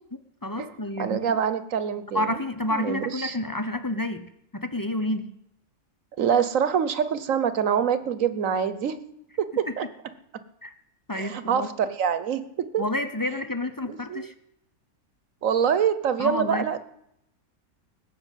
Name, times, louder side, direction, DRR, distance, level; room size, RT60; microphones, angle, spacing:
voice 1, 0.4-1.4 2.1-5.3 9.7-9.8 10.6-10.7 11.1-11.7 12.8-14.3 16.2-16.8, left 1 dB, 30° left, 9 dB, 0.3 m, -29 dB
voice 2, 1.0-2.4 2.7-3.4 6.2-9.0 9.4-9.8 11.1-12.4 12.7-12.8 13.9-14.3 15.4-16.8, right 8 dB, 60° right, 13 dB, 1.3 m, -25 dB
19.5 x 7.0 x 9.1 m, 0.79 s
omnidirectional pair, 1.7 m